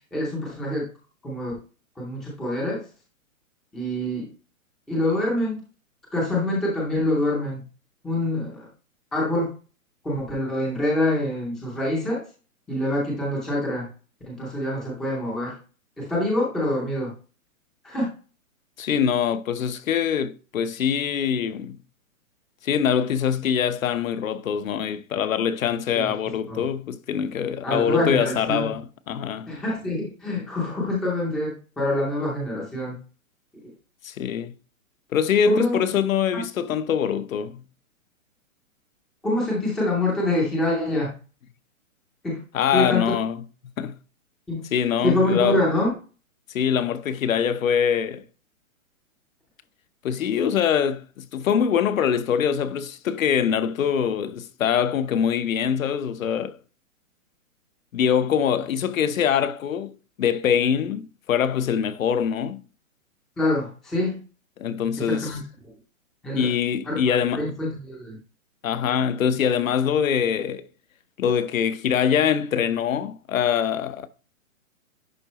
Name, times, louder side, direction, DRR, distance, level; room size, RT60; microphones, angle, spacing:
voice 1, 0.1-0.9 1.2-1.6 2.0-2.8 3.7-4.3 4.9-5.6 6.1-7.6 8.0-8.7 9.1-9.5 10.0-12.2 12.7-13.9 14.3-15.6 16.0-17.1 17.8-18.1 25.9-26.1 26.5-26.6 27.6-28.7 29.5-33.0 35.4-35.8 36.3-36.4 39.2-41.1 42.2-42.4 42.7-43.1 44.5-44.7 45.0-45.9 63.4-64.2 65.0-65.4 66.2-66.5 66.9-68.2, left 1 dB, ahead, 0.5 m, -25 dB
voice 2, 18.8-21.8 22.6-29.5 34.0-34.5 35.1-37.6 42.5-43.4 43.8-44.0 44.7-45.6 46.5-48.2 50.0-56.6 57.9-62.6 64.6-65.4 66.3-67.5 68.6-70.7 71.2-74.1, left 8 dB, 70° left, 0.9 m, -24 dB
10.5 x 3.7 x 3.0 m
hypercardioid pair, 155°, 42 cm